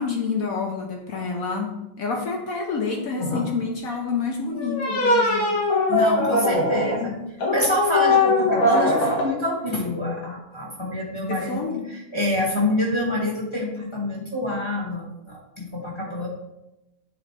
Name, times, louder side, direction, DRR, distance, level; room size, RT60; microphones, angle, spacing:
voice 1, 0.0-5.6 6.4-6.6 6.8-7.1 11.3-11.9, left 5 dB, 65° left, 1 dB, 0.8 m, -28 dB
sound 1, 3.2-3.5 4.6-7.0 7.4-9.3, left 2 dB, 85° left, 1.9 m, -21 dB
voice 2, 5.9-7.1 7.5-16.3, left 1 dB, 20° left, -4 dB, 0.8 m, -26 dB
8.4 x 3.8 x 3.4 m, 0.92 s
omnidirectional pair, 2.2 m